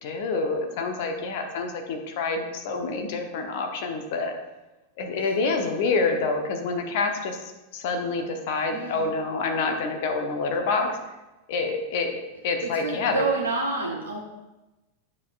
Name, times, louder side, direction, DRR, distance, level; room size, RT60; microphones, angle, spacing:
voice 1, 0.0-4.3 5.0-7.4 7.7-11.0 11.5-12.2 12.4-13.2, left 4 dB, 50° left, 4 dB, 0.9 m, -27 dB
voice 2, 8.6-9.1 12.6-14.2, right 3 dB, 75° right, -1 dB, 0.8 m, -29 dB
9.2 x 5.5 x 2.5 m, 1.0 s
figure-of-eight pair, 90°, 0 cm